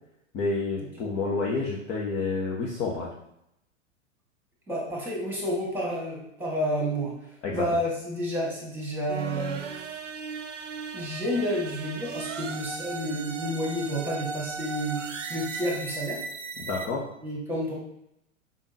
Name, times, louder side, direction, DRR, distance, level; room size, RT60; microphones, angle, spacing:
voice 1, 0.3-3.1 7.4-7.7 16.6-17.1, left 3 dB, 15° left, -3 dB, 0.3 m, -29 dB
voice 2, 4.7-7.1 7.5-9.6 10.9-16.2 17.2-17.7, equal, 5° right, -3 dB, 1.5 m, -30 dB
sound 1, 9.1-16.9, right 5 dB, 65° right, 0.7 m, -37 dB
5.1 x 3.5 x 2.7 m, 0.81 s
figure-of-eight pair, 100°, 39 cm